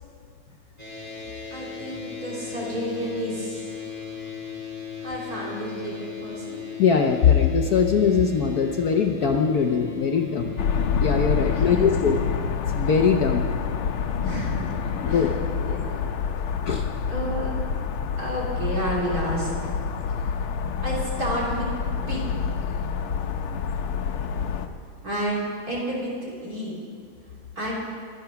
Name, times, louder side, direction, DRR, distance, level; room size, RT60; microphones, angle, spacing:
sound 1, 0.8-12.3, left 8 dB, 15° right, 3.0 m, -37 dB
voice 1, 1.5-3.7 5.0-6.6 11.6-11.9 14.2-15.3 15.6-16.0 17.1-17.5 18.2-19.8 20.8-21.7 22.1-22.2 25.0-26.7 27.6-27.7, right 1 dB, 40° right, -4 dB, 3.3 m, -30 dB
voice 2, 6.8-10.6 11.0-12.2 12.7-13.4 15.0-15.3 16.7-16.8, left 6 dB, 60° left, 3 dB, 1.0 m, -21 dB
sound 2, 10.6-24.7, left 6 dB, 80° left, 1.7 m, -27 dB
23.0 x 9.2 x 5.8 m, 2.2 s
omnidirectional pair, 2.4 m